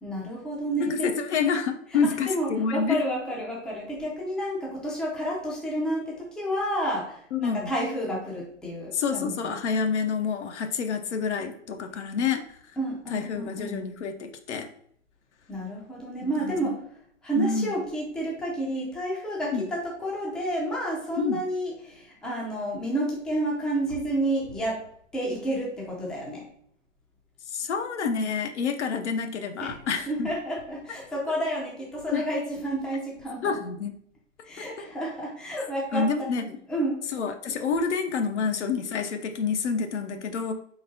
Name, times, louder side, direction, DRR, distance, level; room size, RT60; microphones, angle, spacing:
voice 1, 0.0-1.0 2.3-9.5 12.8-13.8 15.5-16.8 17.2-24.8 25.1-26.5 29.6-29.7 30.1-33.6 34.4-36.3 36.7-37.0, right 1 dB, ahead, -4 dB, 0.5 m, -30 dB
voice 2, 0.8-3.0 7.3-7.7 8.9-12.6 13.1-14.7 16.2-16.8 17.4-17.8 19.5-19.7 21.2-21.4 27.5-30.3 32.1-32.2 33.4-33.9 34.6-34.8 35.9-36.6 37.1-40.5, left 5 dB, 60° left, 6 dB, 0.7 m, -28 dB
4.7 x 3.9 x 2.7 m, 0.65 s
figure-of-eight pair, 120°, 39 cm